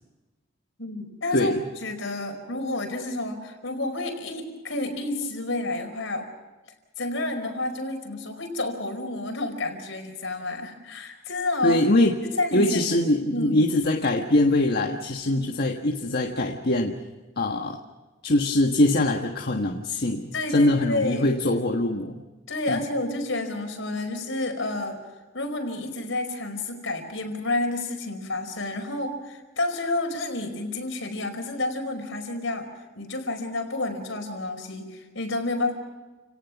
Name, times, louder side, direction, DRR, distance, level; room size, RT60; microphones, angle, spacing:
voice 1, 0.8-1.5 1.8-6.3 7.0-11.8 12.2-12.9 13.3-13.6 20.3-21.3 22.5-25.0 25.3-32.7 32.9-35.7, left 2 dB, 70° left, 5 dB, 4.9 m, -30 dB
voice 2, 1.3-1.6 11.6-12.2 12.5-17.0 17.4-17.8 18.2-22.2 22.7-22.8, left 1 dB, 50° left, 2 dB, 1.5 m, -23 dB
29.5 x 18.5 x 6.1 m, 1.2 s
head